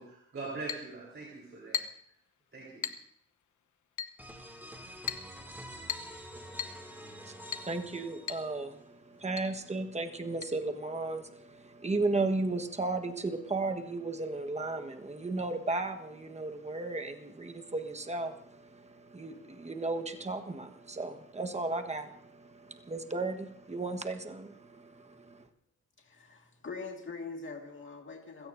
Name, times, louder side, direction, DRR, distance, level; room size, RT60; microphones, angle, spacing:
voice 1, 0.0-1.9 2.5-2.9, right 3 dB, 45° right, -4 dB, 4.0 m, -42 dB
Chink clink, 0.7-0.9 1.7-2.1 2.8-3.1 4.0-4.2 5.1-5.3 5.9-6.2 6.6-6.8 7.5-7.7 8.3-8.5 8.7-8.8 9.4-9.5 10.4-10.5, left 8 dB, 80° left, 1.0 m, -37 dB
sound 1, 4.2-8.8, equal, 5° right, 2.5 m, -47 dB
voice 2, 7.2-25.4, right 3 dB, 20° right, 5 dB, 1.4 m, -35 dB
voice 3, 26.0-28.5, left 4 dB, 40° left, 2 dB, 2.1 m, -43 dB
28.5 x 16.5 x 2.7 m, 0.68 s
wide cardioid pair, 130°, 29 cm